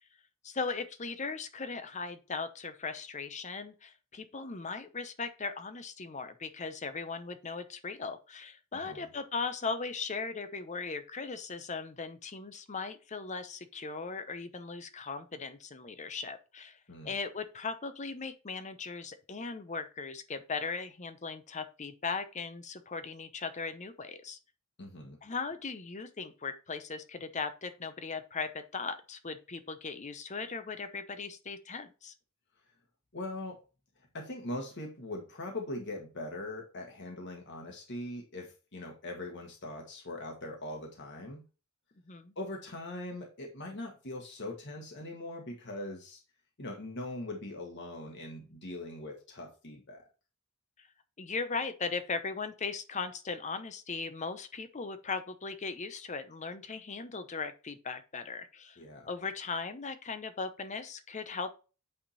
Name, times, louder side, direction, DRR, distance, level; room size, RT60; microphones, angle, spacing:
voice 1, 0.4-16.8 17.0-24.4 25.2-32.1 42.1-42.3 50.8-50.9 51.2-58.8 59.1-61.5, left 4 dB, 35° left, 10 dB, 0.7 m, -38 dB
voice 2, 8.7-9.1 16.9-17.2 24.8-25.2 33.1-33.6 34.1-41.4 42.3-46.2 46.6-50.1 58.8-59.1, left 1 dB, 55° left, 1 dB, 1.4 m, -41 dB
8.7 x 3.6 x 4.1 m, 0.33 s
head